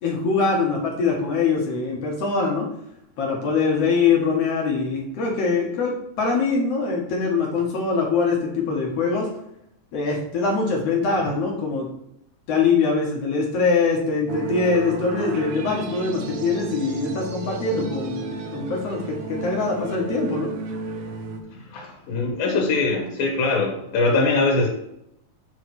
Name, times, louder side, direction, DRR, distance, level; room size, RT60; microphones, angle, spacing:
voice 1, 0.0-2.7 3.2-9.3 9.9-11.9 12.5-20.5, left 4 dB, 60° left, -1 dB, 1.8 m, -23 dB
sound 1, 14.3-21.4, right 5 dB, 75° right, 2.1 m, -32 dB
voice 2, 21.7-24.7, left 3 dB, 90° left, 0 dB, 3.0 m, -22 dB
7.7 x 3.2 x 6.0 m, 0.78 s
omnidirectional pair, 4.1 m